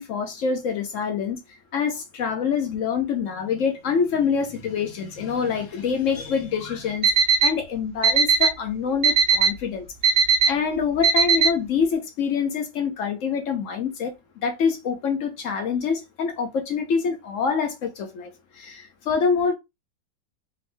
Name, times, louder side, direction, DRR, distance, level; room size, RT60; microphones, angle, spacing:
voice 1, 0.0-1.4 1.7-14.1 14.4-19.5, left 6 dB, 65° left, 0.8 m, -26 dB
Alarm, 7.0-7.5 8.0-8.5 9.0-9.5 10.0-10.5 11.0-11.5, right 6 dB, 75° right, 1.7 m, -16 dB
3.5 x 2.6 x 3.3 m
omnidirectional pair, 2.0 m